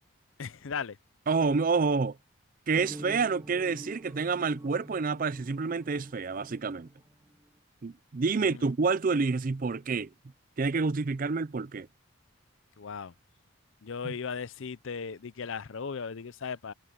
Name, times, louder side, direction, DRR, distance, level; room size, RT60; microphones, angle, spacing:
voice 1, 0.4-1.0 8.4-8.6 12.8-13.1 13.8-16.7, left 6 dB, 65° left, 0.6 m, -37 dB
voice 2, 1.3-2.2 2.7-6.9 7.8-10.1 10.6-11.9 14.0-14.1, right 4 dB, 40° right, 0.4 m, -28 dB
sound 1, 2.7-7.5, right 1 dB, 15° right, 1.2 m, -47 dB
head